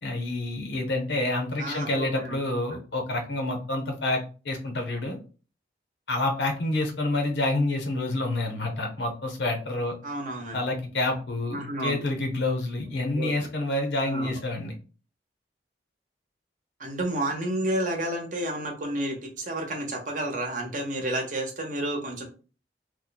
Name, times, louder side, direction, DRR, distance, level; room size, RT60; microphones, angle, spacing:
voice 1, 0.0-5.2 6.1-9.9 10.5-14.7, left 2 dB, 80° left, 4 dB, 0.9 m, -28 dB
voice 2, 1.6-2.4 10.0-10.6 11.5-12.0 13.1-13.5 14.0-14.4 16.8-22.3, right 1 dB, 45° right, 2 dB, 0.8 m, -31 dB
3.0 x 2.2 x 3.9 m, 0.36 s
head